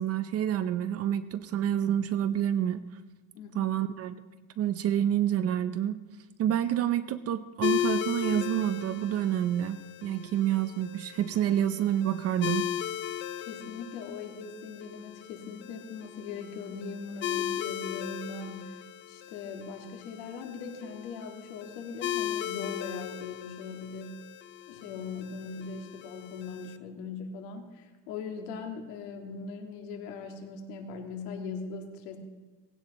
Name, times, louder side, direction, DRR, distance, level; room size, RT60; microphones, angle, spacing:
voice 1, 0.0-2.8 3.5-4.1 4.6-6.0 6.4-12.7, right 10 dB, 35° right, 11 dB, 0.6 m, -28 dB
voice 2, 3.3-3.8 13.4-18.8 19.1-24.2 24.7-32.2, left 5 dB, 75° left, 4 dB, 2.2 m, -40 dB
sound 1, 7.6-26.8, left 11 dB, 30° left, 0.4 m, -37 dB
17.5 x 16.0 x 4.1 m, 1.3 s
cardioid pair, 145°, 44 cm